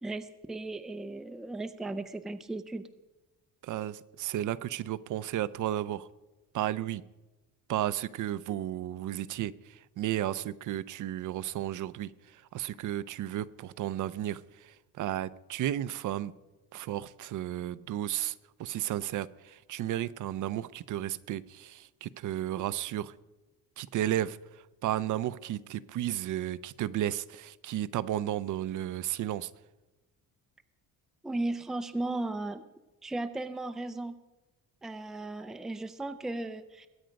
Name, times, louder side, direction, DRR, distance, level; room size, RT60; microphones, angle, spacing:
voice 1, 0.0-2.9 31.2-32.6 33.0-34.1 34.8-36.9, right 2 dB, ahead, 9 dB, 0.4 m, -36 dB
voice 2, 3.6-6.1 6.5-7.0 7.7-16.3 16.7-23.1 23.8-29.5, right 12 dB, 60° right, 16 dB, 0.6 m, -33 dB
21.0 x 9.0 x 5.2 m, 1.1 s
cardioid pair, 175°, 35 cm